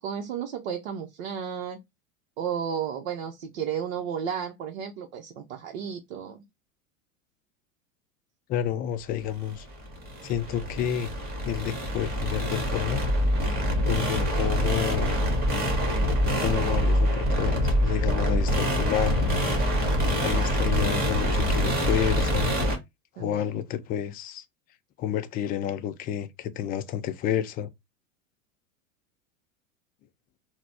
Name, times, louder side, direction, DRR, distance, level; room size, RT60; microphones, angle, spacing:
voice 1, 0.0-1.8 2.4-6.4 13.6-13.9 23.2-23.6, right 8 dB, 60° right, 0.7 m, -33 dB
voice 2, 8.5-9.7 10.2-11.1 11.4-13.0 13.9-15.2 16.4-19.4 20.2-22.5 23.2-24.4 25.0-27.7, left 10 dB, 25° left, 0.4 m, -30 dB
sound 1, 9.5-22.8, equal, 25° right, 1.6 m, -25 dB
4.0 x 2.1 x 4.2 m
figure-of-eight pair, 85°, 40 cm